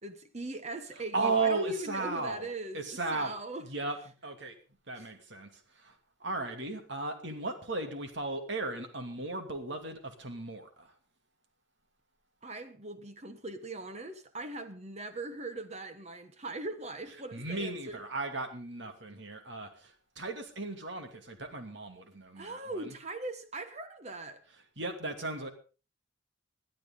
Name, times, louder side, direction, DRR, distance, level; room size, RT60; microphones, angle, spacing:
voice 1, 0.0-3.7 4.9-5.1 12.4-18.0 22.3-24.4, right 2 dB, 35° right, 1.2 m, -40 dB
voice 2, 0.9-3.3 3.6-4.5 4.9-5.5 5.8-5.9 6.2-10.9 17.1-23.0 24.5-25.5, right 3 dB, 60° right, 2.6 m, -36 dB
20.5 x 11.5 x 3.8 m
head